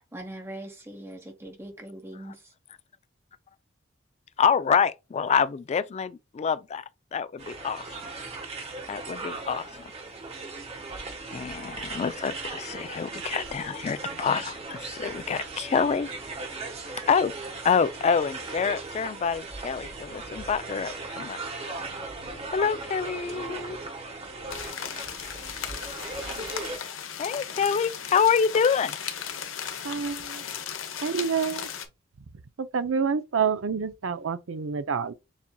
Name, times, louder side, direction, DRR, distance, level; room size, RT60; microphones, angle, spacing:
voice 1, 0.0-2.5 30.6-30.7, right 1 dB, 15° right, 0.9 m, -41 dB
voice 2, 4.4-6.8 7.1-7.8 8.9-9.9 11.3-16.1 17.1-17.3 17.6-21.4 22.5-23.8 27.2-29.0, left 6 dB, 35° left, 0.3 m, -26 dB
sound 1, 7.4-26.8, right 3 dB, 30° right, 1.2 m, -38 dB
sound 2, 24.5-31.9, left 8 dB, 75° left, 0.9 m, -36 dB
voice 3, 29.8-30.4 31.0-31.7 32.6-35.1, right 6 dB, 75° right, 0.5 m, -28 dB
7.2 x 2.7 x 2.2 m
head